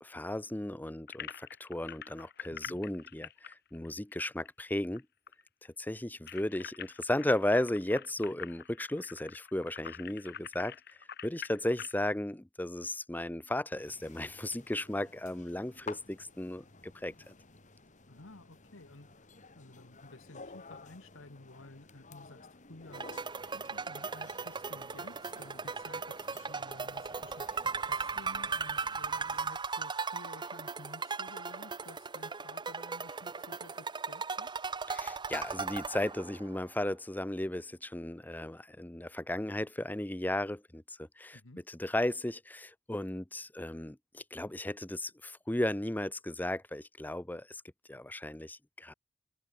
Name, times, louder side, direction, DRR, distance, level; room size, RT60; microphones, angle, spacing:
voice 1, 0.0-5.0 5.8-11.0 11.2-17.3 34.9-41.4 41.7-47.6 47.9-48.9, left 1 dB, 10° left, 0.7 m, -35 dB
sound 1, 1.1-5.0 5.3-5.4 5.7-12.0, left 9 dB, 55° left, 3.2 m, -46 dB
voice 2, 2.5-2.8 18.1-34.5 41.3-41.6, left 2 dB, 85° left, 1.8 m, -53 dB
sound 2, 13.8-29.5, left 4 dB, 40° left, 2.5 m, -53 dB
sound 3, 22.9-36.6, right 4 dB, 25° right, 0.8 m, -37 dB
head